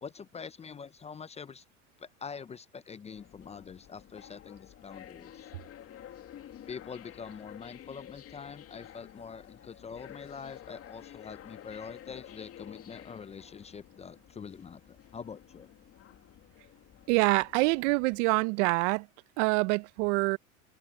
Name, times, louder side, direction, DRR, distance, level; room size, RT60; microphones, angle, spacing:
voice 1, 0.0-1.6 2.0-5.5 6.7-15.7, left 6 dB, 15° left, 0.6 m, -44 dB
sound 1, 3.1-18.2, left 11 dB, 35° left, 2.5 m, -51 dB
voice 2, 17.1-19.1 19.4-20.4, right 26 dB, 65° right, 1.0 m, -26 dB
open air
supercardioid pair, 105°, 38 cm